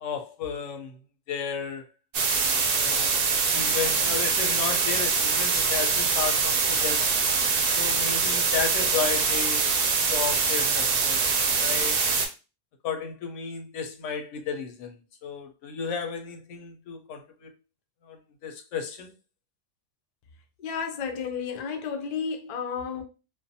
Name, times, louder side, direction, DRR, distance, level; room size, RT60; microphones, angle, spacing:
voice 1, 0.0-1.0 1.3-1.9 2.7-7.1 7.7-9.8 10.1-12.0 12.8-17.5 18.0-18.2 18.4-19.1, left 6 dB, 90° left, 1.0 m, -33 dB
sound 1, 2.1-12.3, right 5 dB, 60° right, 0.7 m, -24 dB
voice 2, 20.6-23.0, left 6 dB, 60° left, 0.4 m, -32 dB
2.5 x 2.1 x 2.6 m
omnidirectional pair, 1.2 m